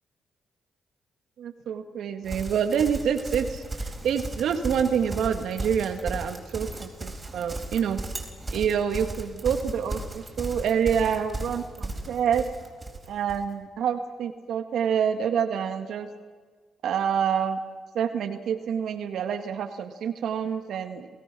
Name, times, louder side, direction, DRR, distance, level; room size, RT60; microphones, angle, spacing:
voice 1, 1.4-8.0 8.5-12.5 13.1-16.1 16.8-17.6 17.9-21.1, right 8 dB, 75° right, 8 dB, 1.8 m, -27 dB
Livestock farm animals working animals, 2.2-13.4, right 2 dB, 25° right, 4.2 m, -36 dB
28.5 x 17.0 x 6.1 m, 1.5 s
supercardioid pair, 65°, 0 cm